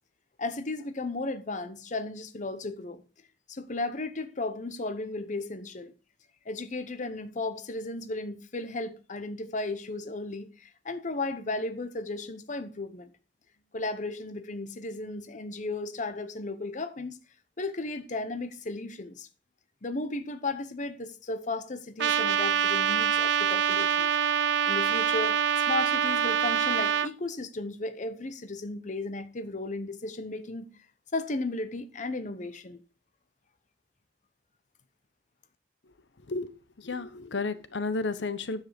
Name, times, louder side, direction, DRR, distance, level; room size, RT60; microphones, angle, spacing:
voice 1, 0.4-3.0 3.5-5.9 6.4-13.1 13.7-17.2 17.6-19.3 19.8-24.1 24.7-25.4 25.7-30.7 31.1-32.8, left 2 dB, 45° left, 0.9 m, -35 dB
Trumpet, 22.0-27.1, right 8 dB, 75° right, 0.4 m, -25 dB
voice 2, 36.8-38.6, left 3 dB, 85° left, 0.9 m, -32 dB
9.5 x 7.6 x 5.1 m
head